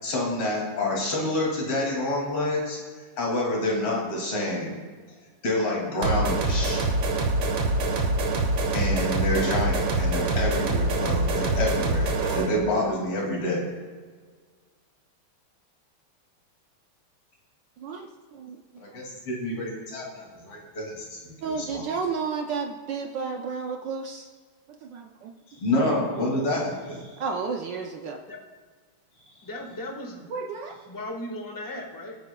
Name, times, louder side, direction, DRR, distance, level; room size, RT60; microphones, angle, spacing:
voice 1, 0.0-2.8 3.2-4.8 5.4-6.8 8.7-13.6 18.8-21.8 25.6-27.1, left 1 dB, 75° left, -3 dB, 3.4 m, -28 dB
sound 1, 6.0-12.5, right 2 dB, 85° right, 2.2 m, -25 dB
voice 2, 17.8-18.6 21.4-24.3 24.7-25.3 27.2-28.2 30.3-30.8, right 5 dB, 70° right, 4 dB, 1.2 m, -32 dB
voice 3, 29.4-30.2 30.9-32.2, left 1 dB, 10° left, 1 dB, 1.1 m, -36 dB
22.0 x 9.3 x 2.3 m, 1.5 s
omnidirectional pair, 2.4 m